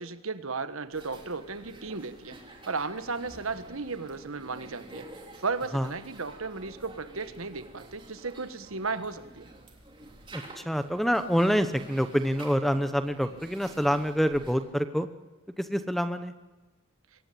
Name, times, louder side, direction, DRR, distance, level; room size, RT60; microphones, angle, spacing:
voice 1, 0.0-2.4 2.7-5.1 5.4-9.5, right 4 dB, 75° right, 12 dB, 1.4 m, -35 dB
sound 1, 0.9-14.6, right 2 dB, 20° right, 3.4 m, -49 dB
voice 2, 10.3-15.1 15.6-16.3, equal, ahead, 10 dB, 0.9 m, -26 dB
23.5 x 18.5 x 8.6 m, 1.2 s
head